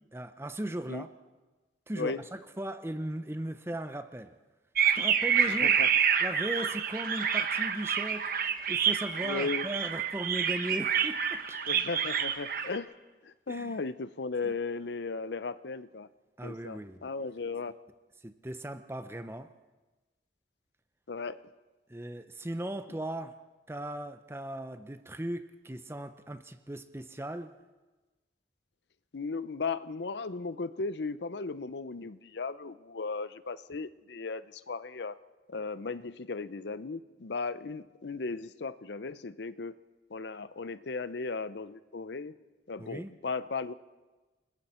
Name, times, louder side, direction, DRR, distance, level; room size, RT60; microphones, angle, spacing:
voice 1, 0.1-1.1 1.9-4.3 5.0-5.8 6.2-8.3 8.7-11.6 13.5-13.8 14.4-14.5 16.4-17.1 18.2-19.5 21.9-23.4 23.7-27.5 42.8-43.1, right 1 dB, 15° right, 10 dB, 0.6 m, -38 dB
sound 1, 4.8-12.8, right 7 dB, 50° right, 1.1 m, -28 dB
voice 2, 5.5-5.9 9.2-9.6 11.7-12.9 13.2-16.1 16.4-17.8 21.1-21.4 29.1-35.1 35.5-39.8 40.1-42.3 42.7-43.7, left 4 dB, 70° left, 15 dB, 0.6 m, -36 dB
29.0 x 20.5 x 4.4 m, 1.2 s
head